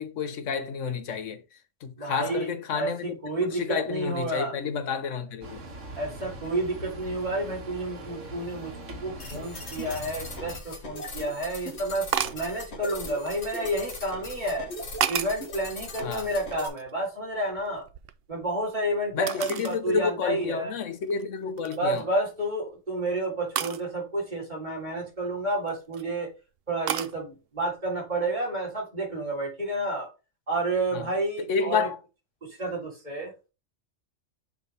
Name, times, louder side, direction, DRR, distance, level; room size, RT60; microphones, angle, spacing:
voice 1, 0.0-1.4 1.8-5.6 16.0-16.3 19.1-22.0 30.9-31.1 31.5-32.0, left 6 dB, 80° left, 1.2 m, -30 dB
voice 2, 2.0-4.6 5.9-8.7 9.0-14.7 15.1-17.9 18.3-20.7 21.7-26.3 26.7-30.1 30.5-31.9 32.4-33.3, right 1 dB, 35° right, 3.5 m, -30 dB
sound 1, 5.4-10.6, right 1 dB, 80° right, 1.8 m, -41 dB
sound 2, 9.2-16.7, left 1 dB, 60° left, 1.8 m, -39 dB
sound 3, 10.7-10.8 12.1-12.5 13.2-14.0 14.7-15.5 15.9-17.0 17.3-18.6 19.3-19.8 20.3-20.4 21.0-21.2 21.6-22.0 23.6-23.8 25.5-26.0 26.9-27.2, right 10 dB, 60° right, 0.7 m, -32 dB
6.8 x 5.1 x 3.3 m
omnidirectional pair, 1.3 m